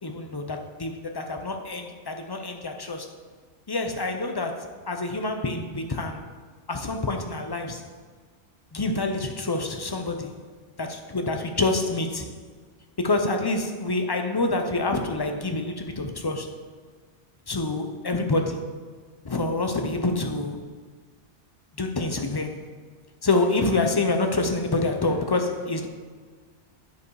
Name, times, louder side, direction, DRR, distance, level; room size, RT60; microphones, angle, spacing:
voice 1, 0.0-3.1 3.7-6.3 6.7-7.8 8.7-10.4 10.8-12.3 13.0-16.6 17.5-18.7 19.2-20.6 21.8-22.6 23.2-25.9, left 2 dB, 30° left, 5 dB, 0.5 m, -27 dB
9.5 x 5.0 x 4.7 m, 1.5 s
omnidirectional pair, 1.2 m